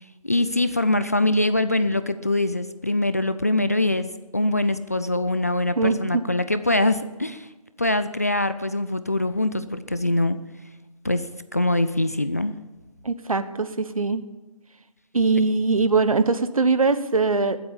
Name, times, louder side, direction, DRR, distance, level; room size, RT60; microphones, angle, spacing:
voice 1, 0.2-7.5 7.8-10.4 11.0-11.3 11.5-12.5, left 2 dB, 25° left, 12 dB, 0.4 m, -23 dB
voice 2, 5.8-6.2 13.0-14.2 15.1-17.6, right 4 dB, 65° right, 11 dB, 1.3 m, -22 dB
20.5 x 8.0 x 7.3 m, 1.1 s
figure-of-eight pair, 165°, 19 cm